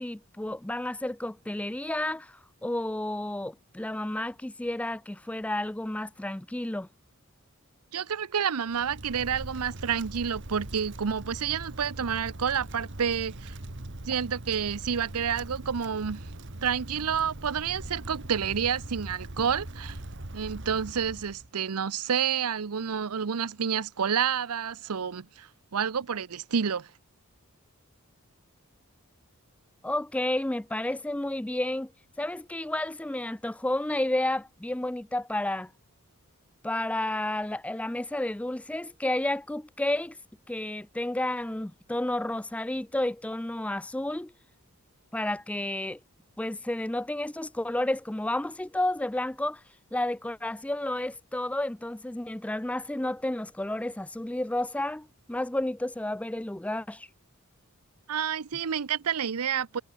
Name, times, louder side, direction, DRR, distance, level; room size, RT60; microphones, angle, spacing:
voice 1, 0.0-6.9 29.8-31.9 32.2-35.7 36.6-40.2 40.5-44.3 45.1-46.0 46.4-49.6 49.9-57.1, left 1 dB, 5° left, 0.4 m, -31 dB
voice 2, 7.9-13.6 14.0-16.2 16.6-20.0 20.3-26.9 58.1-59.8, right 7 dB, 90° right, 0.7 m, -29 dB
Wind, 8.7-21.5, right 1 dB, 55° right, 1.9 m, -41 dB
head